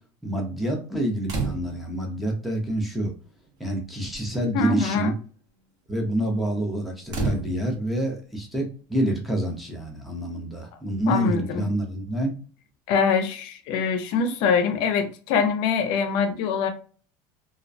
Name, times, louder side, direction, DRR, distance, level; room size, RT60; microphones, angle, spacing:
voice 1, 0.2-3.1 3.6-5.1 5.9-12.3, right 1 dB, ahead, 0.5 m, -27 dB
sound 1, 1.3-2.0 3.1-3.2 3.5-3.8 4.1-4.4 7.1-8.0 9.6-9.7, right 4 dB, 40° right, 0.7 m, -30 dB
voice 2, 4.5-5.1 11.1-11.7 12.9-16.7, left 5 dB, 55° left, 0.4 m, -23 dB
2.3 x 2.1 x 2.5 m
cardioid pair, 160°, 11 cm